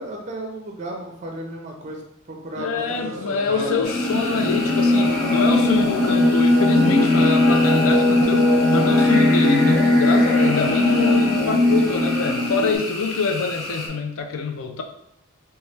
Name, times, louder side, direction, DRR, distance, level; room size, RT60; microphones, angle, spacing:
voice 1, 0.0-3.8, right 1 dB, 35° right, 1 dB, 0.4 m, -34 dB
voice 2, 2.6-14.8, left 4 dB, 75° left, 5 dB, 0.4 m, -26 dB
sound 1, 2.8-12.3, equal, 30° left, 0.8 m, -38 dB
sound 2, 3.6-12.8, left 1 dB, 60° left, 0.8 m, -18 dB
sound 3, 3.8-13.9, left 2 dB, ahead, 0.7 m, -32 dB
3.0 x 2.3 x 3.2 m, 0.79 s
head